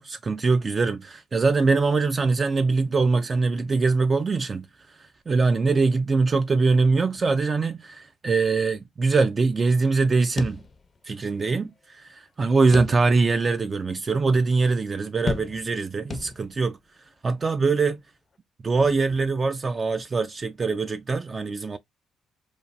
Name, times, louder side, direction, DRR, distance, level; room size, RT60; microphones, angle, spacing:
voice 1, 0.0-4.7 5.3-10.6 11.1-16.8 17.2-18.0 18.6-21.8, right 4 dB, 35° right, 0.3 m, -23 dB
sound 1, 10.4-11.2 11.6-11.7 12.7-13.4 13.9-14.0 15.3-15.8 16.1-16.8, left 4 dB, 35° left, 0.4 m, -33 dB
3.1 x 2.3 x 2.5 m
cardioid pair, 85°, 0 cm